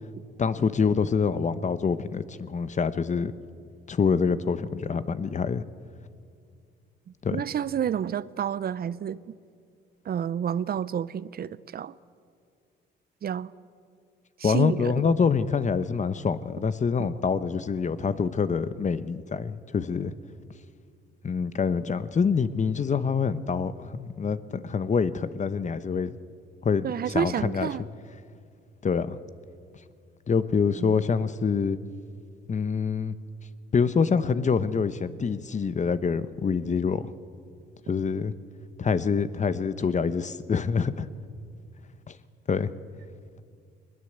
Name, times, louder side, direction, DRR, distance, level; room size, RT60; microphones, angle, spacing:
voice 1, 0.4-3.3 3.9-5.6 7.2-7.4 14.4-20.1 21.2-26.2 26.6-27.7 28.8-29.2 30.3-31.8 32.5-33.1 33.7-37.1 37.9-38.3 38.8-41.1 42.1-42.2 42.5-42.7, left 5 dB, 35° left, 13 dB, 1.0 m, -26 dB
voice 2, 7.3-9.4 10.0-12.0 13.2-13.5 14.4-14.9 26.8-27.9 30.8-31.0, right 9 dB, 50° right, 18 dB, 0.6 m, -30 dB
21.5 x 20.5 x 8.0 m, 2.3 s
cardioid pair, 90°, 20 cm